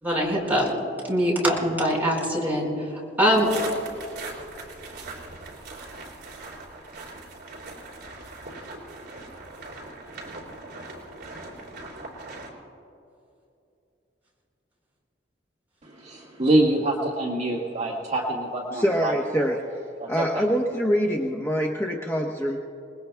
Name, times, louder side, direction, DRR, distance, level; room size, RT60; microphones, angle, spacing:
voice 1, 0.0-0.7 1.1-2.9 3.2-3.5, equal, 10° right, -4 dB, 4.8 m, -23 dB
sound 1, 3.3-12.5, right 3 dB, 60° right, 4.5 m, -40 dB
voice 2, 15.8-19.1 19.4-19.5 20.0-20.5, right 1 dB, 40° right, -3 dB, 1.8 m, -25 dB
voice 3, 18.7-19.8 20.1-22.6, equal, 15° left, -1 dB, 1.0 m, -25 dB
29.5 x 20.0 x 2.3 m, 2.8 s
head